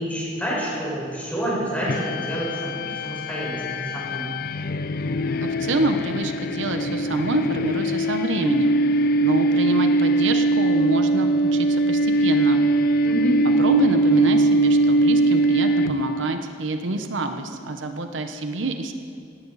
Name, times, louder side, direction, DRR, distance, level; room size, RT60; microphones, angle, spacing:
voice 1, 0.0-4.3 13.0-13.4, right 1 dB, 10° left, -5 dB, 4.9 m, -28 dB
sound 1, 1.9-16.4, right 1 dB, 50° left, 0.4 m, -21 dB
voice 2, 5.4-12.6 13.6-18.9, right 2 dB, 80° right, 6 dB, 0.9 m, -26 dB
18.0 x 16.5 x 4.1 m, 2.4 s
head